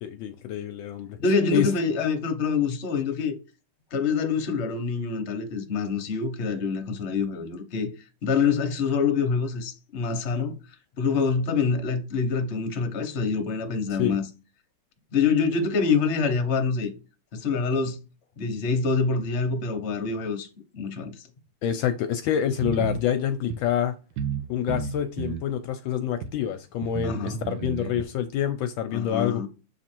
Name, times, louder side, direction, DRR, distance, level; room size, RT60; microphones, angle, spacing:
voice 1, 0.0-1.2 1.5-1.7 14.0-14.2 21.6-24.0 24.5-29.5, left 9 dB, 75° left, 1.2 m, -27 dB
voice 2, 1.2-3.3 3.9-7.9 8.2-10.5 11.0-14.2 15.1-16.9 17.3-18.0 18.4-20.5 20.7-21.3 27.0-27.4 28.9-29.5, left 5 dB, 45° left, 1.0 m, -26 dB
sound 1, 22.6-23.0 23.5-23.6 24.2-24.4 24.7-25.5 26.2-26.3 26.8-28.0, right 6 dB, 70° right, 1.4 m, -32 dB
7.3 x 3.2 x 4.4 m
omnidirectional pair, 2.3 m